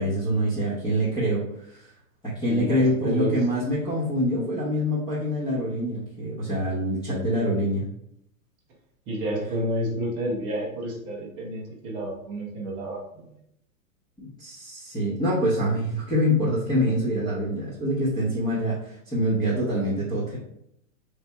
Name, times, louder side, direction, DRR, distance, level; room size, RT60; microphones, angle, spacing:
voice 1, 0.0-1.9 2.3-7.8 14.2-20.4, equal, 10° left, -10 dB, 0.9 m, -25 dB
voice 2, 2.5-3.4 9.1-13.0, right 1 dB, 15° right, -3 dB, 0.4 m, -30 dB
3.4 x 2.7 x 4.4 m, 0.76 s
supercardioid pair, 155°, 42 cm